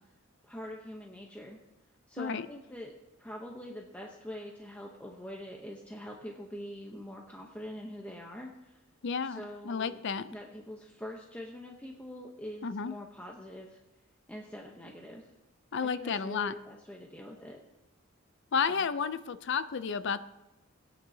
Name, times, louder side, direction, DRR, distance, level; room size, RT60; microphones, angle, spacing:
voice 1, 0.4-1.6 2.1-2.9 3.2-8.8 9.2-13.8 14.3-15.3 15.8-17.6 18.7-18.9, equal, 5° left, 0 dB, 0.8 m, -44 dB
voice 2, 9.0-10.3 12.6-12.9 15.7-16.5 18.5-20.2, left 6 dB, 60° left, 13 dB, 0.5 m, -32 dB
20.0 x 8.9 x 2.8 m, 0.98 s
head